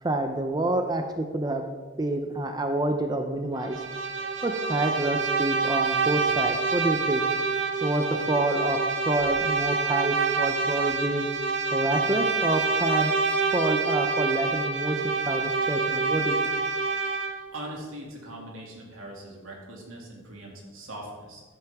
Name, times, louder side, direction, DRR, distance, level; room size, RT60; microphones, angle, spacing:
voice 1, 0.0-1.6 2.0-3.8 4.4-7.3 7.8-8.8 9.1-11.3 11.7-13.1 13.5-16.4, right 1 dB, 20° right, 5 dB, 0.5 m, -27 dB
Bowed string instrument, 3.6-17.5, right 4 dB, 60° right, 0.9 m, -27 dB
voice 2, 17.5-21.4, right 1 dB, 85° right, -1 dB, 2.4 m, -41 dB
14.0 x 7.8 x 3.5 m, 1.4 s
head